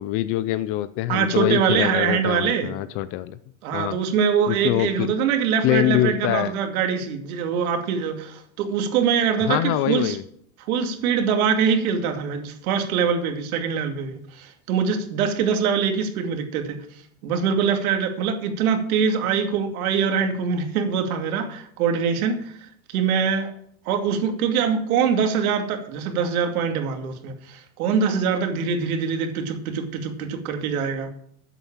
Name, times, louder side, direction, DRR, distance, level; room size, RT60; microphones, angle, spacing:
voice 1, 0.0-3.4 3.7-4.0 4.5-5.1 5.6-6.5 9.4-10.2, left 14 dB, 35° left, 15 dB, 0.4 m, -24 dB
voice 2, 1.1-2.7 3.6-10.2 10.7-16.8 17.2-22.5 22.9-23.5 23.9-31.1, right 6 dB, 70° right, 5 dB, 2.5 m, -23 dB
10.0 x 8.2 x 7.2 m, 0.66 s
supercardioid pair, 150°, 44 cm